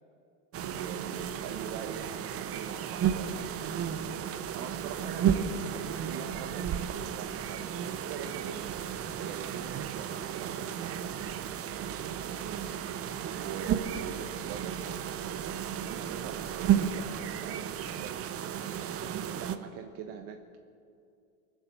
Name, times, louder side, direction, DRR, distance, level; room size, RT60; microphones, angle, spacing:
sound 1, 0.5-19.6, right 9 dB, 35° right, 0.9 m, -33 dB
voice 1, 0.5-8.6 9.2-11.4 11.8-12.1 13.4-15.1 15.7-18.2 19.1-20.6, right 7 dB, 60° right, 5 dB, 1.3 m, -43 dB
20.5 x 7.3 x 9.0 m, 2.4 s
supercardioid pair, 110°, 39 cm